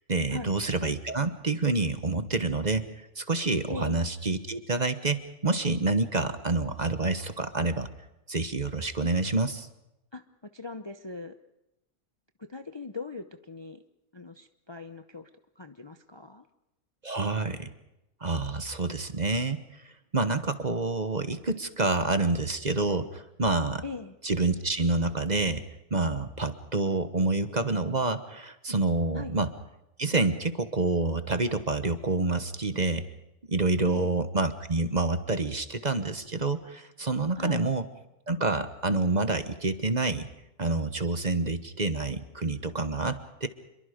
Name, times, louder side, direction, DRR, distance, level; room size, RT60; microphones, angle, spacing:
voice 1, 0.1-2.9 3.2-7.9 8.3-9.7 17.0-17.7 18.2-19.6 20.1-23.8 24.2-25.6 25.9-29.5 30.0-33.0 33.5-37.8 38.3-40.3 40.6-43.5, right 3 dB, 35° right, 10 dB, 1.2 m, -28 dB
voice 2, 3.7-4.0 10.1-10.2 10.5-11.4 12.4-13.8 14.1-15.3 15.6-16.4 23.8-24.2 29.1-29.4 33.8-34.2 37.4-37.6, left 4 dB, 25° left, 8 dB, 0.7 m, -40 dB
28.0 x 23.0 x 5.2 m, 0.91 s
omnidirectional pair, 1.4 m